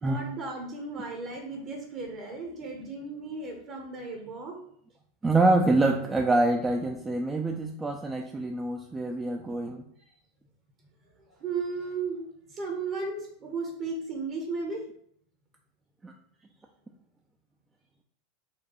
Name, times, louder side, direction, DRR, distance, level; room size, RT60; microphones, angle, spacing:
voice 1, 0.0-4.6 10.0-10.1 11.3-14.8, right 4 dB, 40° right, 1 dB, 0.8 m, -35 dB
voice 2, 5.2-9.8 16.0-16.1, right 2 dB, 15° right, 1 dB, 0.3 m, -25 dB
4.2 x 2.3 x 2.9 m, 0.65 s
figure-of-eight pair, 85°, 0 cm